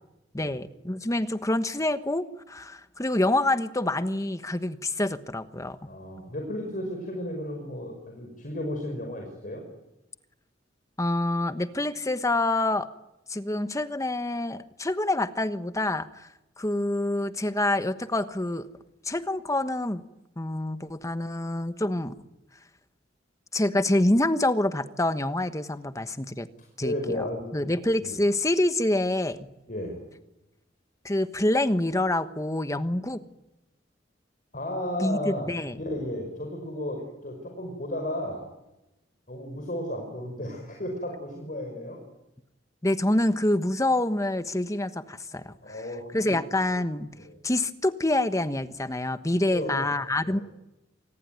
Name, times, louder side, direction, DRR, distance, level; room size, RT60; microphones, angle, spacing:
voice 1, 0.3-5.9 11.0-12.9 13.3-16.3 16.6-18.7 19.0-20.0 20.4-22.1 23.5-26.5 26.8-27.2 27.5-29.5 31.0-33.2 35.0-35.8 42.8-45.5 46.1-47.1 47.4-50.4, left 1 dB, 15° left, 11 dB, 1.2 m, -26 dB
voice 2, 5.9-9.6 26.8-27.7 28.0-28.2 29.7-30.0 34.5-35.5 35.8-38.4 39.3-42.0 45.6-46.4 47.1-47.4 49.3-49.9 50.2-50.4, left 1 dB, 45° left, 2 dB, 5.5 m, -34 dB
27.0 x 20.0 x 9.5 m, 0.97 s
head